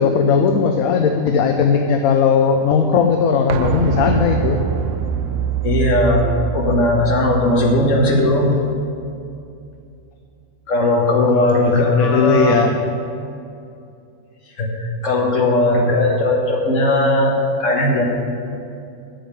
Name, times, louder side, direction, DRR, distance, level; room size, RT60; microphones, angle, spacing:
voice 1, 0.0-4.6 11.3-12.7, left 6 dB, 75° left, 5 dB, 1.1 m, -17 dB
sound 1, 3.5-9.1 9.4-9.5, right 8 dB, 70° right, 0.9 m, -24 dB
voice 2, 5.6-6.2 6.5-8.5 10.7-12.7 14.6-17.3 17.6-18.0, left 1 dB, 60° left, 0 dB, 1.9 m, -17 dB
8.8 x 7.2 x 8.7 m, 2.5 s
omnidirectional pair, 1.5 m